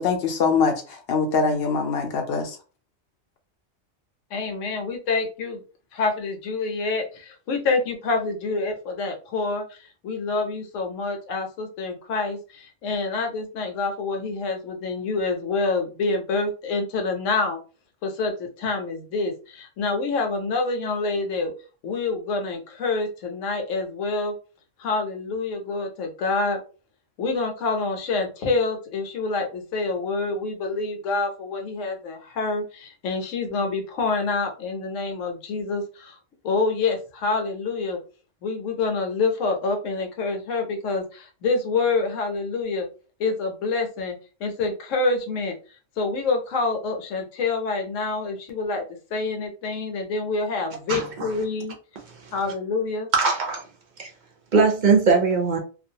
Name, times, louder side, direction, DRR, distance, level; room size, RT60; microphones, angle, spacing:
voice 1, 0.0-2.6, left 5 dB, 60° left, 0.7 m, -23 dB
voice 2, 4.3-5.6 5.9-17.6 18.0-21.5 21.8-24.3 24.8-26.6 27.2-36.2 36.4-38.0 38.4-42.9 43.2-45.6 46.0-48.8 49.1-51.7 52.3-53.1, left 3 dB, 75° left, 1.0 m, -27 dB
voice 3, 50.9-51.3 52.2-52.3 53.1-53.6 54.0-54.1 54.5-55.6, right 4 dB, 50° right, 0.6 m, -20 dB
2.4 x 2.2 x 2.7 m
omnidirectional pair, 1.3 m